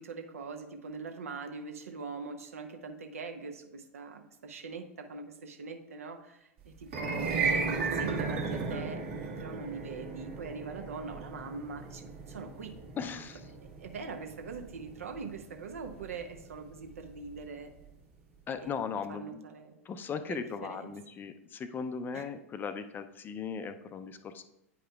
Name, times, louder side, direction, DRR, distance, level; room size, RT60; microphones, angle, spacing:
voice 1, 0.0-12.7 13.8-17.7 18.6-19.8 20.3-21.0 22.1-22.2, right 4 dB, 75° right, 6 dB, 0.7 m, -42 dB
sound 1, 6.8-17.1, right 4 dB, 60° right, 1.3 m, -35 dB
voice 2, 13.0-13.4 18.5-19.4 19.9-24.4, left 6 dB, 25° left, 10 dB, 0.4 m, -38 dB
9.0 x 5.0 x 2.3 m, 0.86 s
figure-of-eight pair, 90°, 8 cm